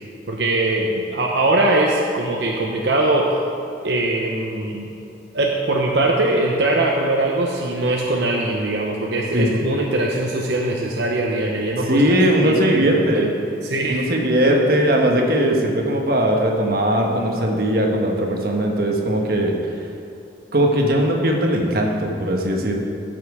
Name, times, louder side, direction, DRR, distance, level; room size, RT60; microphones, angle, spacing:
voice 1, 0.3-3.3 3.8-4.9 5.3-12.0 12.4-13.3 13.6-14.0, right 2 dB, 75° right, -1 dB, 0.8 m, -21 dB
voice 2, 11.9-13.3 13.9-19.8 20.5-22.7, right 1 dB, 55° right, 0 dB, 1.2 m, -19 dB
13.5 x 6.0 x 4.8 m, 2.6 s
head